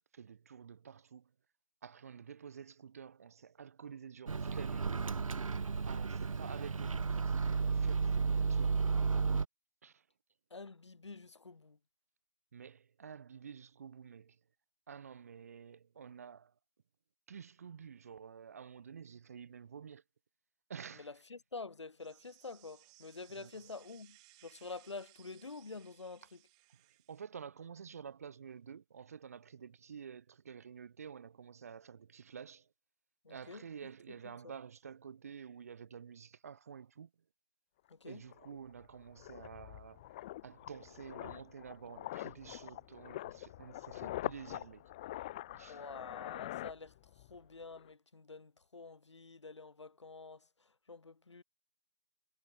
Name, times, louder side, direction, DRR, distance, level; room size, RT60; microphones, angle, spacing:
voice 1, 0.1-1.3 1.8-5.0 5.9-8.8 9.8-10.1 12.5-14.4 14.9-16.5 17.3-20.0 20.7-21.1 23.4-23.6 26.7-26.8 27.1-32.7 33.3-37.1 38.0-44.9 45.5-45.8, right 7 dB, 30° right, 3.0 m, -50 dB
Microwave oven, 4.3-9.4, right 5 dB, 85° right, 0.6 m, -33 dB
voice 2, 10.5-11.8 20.9-26.4 33.2-33.7 34.2-34.5 37.9-38.3 45.7-51.4, left 4 dB, 60° left, 3.8 m, -48 dB
sound 1, 22.0-27.2, right 27 dB, 10° right, 3.3 m, -64 dB
sound 2, 37.9-38.0 38.3-47.4 47.6-47.9, left 15 dB, 15° left, 1.9 m, -45 dB
figure-of-eight pair, 170°, 17 cm